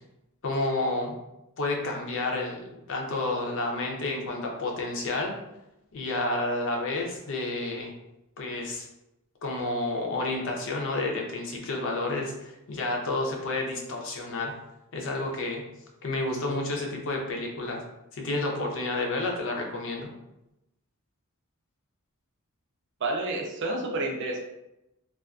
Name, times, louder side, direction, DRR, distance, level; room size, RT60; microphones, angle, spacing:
voice 1, 0.4-1.2 1.6-5.3 5.9-7.9 8.4-8.9 9.4-14.5 14.9-15.6 16.0-17.8 18.1-20.1, left 2 dB, 60° left, 1 dB, 0.5 m, -30 dB
voice 2, 23.0-24.4, right 2 dB, 55° right, 1 dB, 0.4 m, -29 dB
2.4 x 2.3 x 2.3 m, 0.89 s
head